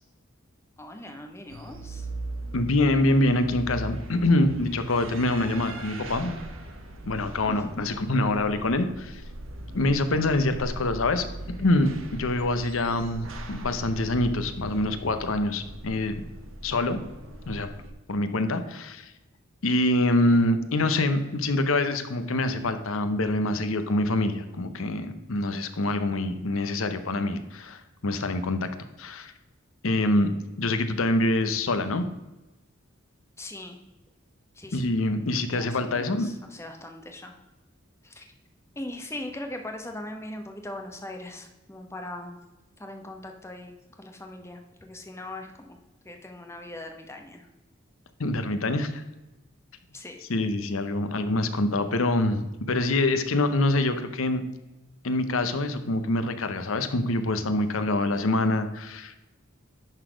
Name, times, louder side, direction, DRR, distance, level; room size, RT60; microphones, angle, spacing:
voice 1, 0.8-2.1 7.5-7.9 33.4-33.8 34.5-34.8 35.5-37.3 38.0-38.3 38.7-42.4 42.8-45.8 46.0-47.5 49.9-50.2, left 1 dB, 15° left, 4 dB, 0.9 m, -40 dB
sound 1, 1.5-17.9, right 1 dB, 75° right, 1.0 m, -40 dB
voice 2, 2.5-6.4 7.0-9.2 9.7-11.3 11.6-16.2 16.6-17.0 17.5-17.7 18.1-19.1 19.6-28.7 29.0-29.3 29.8-30.3 30.6-32.1 34.7-36.3 48.2-49.0 50.3-54.4 55.0-59.1, left 2 dB, 80° left, 10 dB, 0.8 m, -25 dB
11.0 x 4.1 x 5.0 m, 1.0 s
head